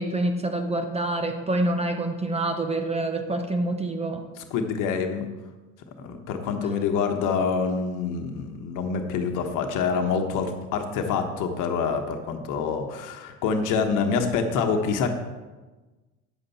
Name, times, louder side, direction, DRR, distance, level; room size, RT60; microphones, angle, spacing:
voice 1, 0.0-4.3, right 2 dB, 15° right, 6 dB, 1.1 m, -26 dB
voice 2, 4.5-5.3 6.0-15.2, left 5 dB, 55° left, 5 dB, 1.3 m, -26 dB
9.2 x 7.7 x 4.3 m, 1.2 s
hypercardioid pair, 80°, 36 cm